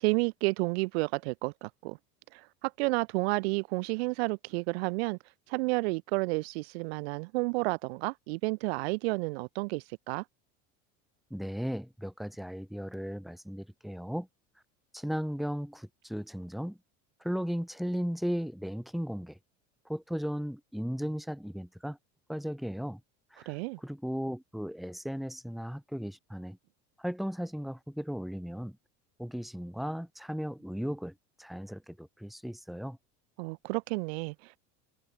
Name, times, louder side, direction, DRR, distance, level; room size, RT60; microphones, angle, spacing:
voice 1, 0.0-2.0 2.3-5.2 5.5-10.2 23.5-23.8 33.4-34.6, right 26 dB, 80° right, 2.3 m, -31 dB
voice 2, 11.3-14.3 14.9-16.8 17.2-19.4 19.8-22.0 22.3-23.0 23.3-26.6 27.0-28.8 29.2-33.0, equal, ahead, 4.4 m, -36 dB
cardioid pair, 180°, 31 cm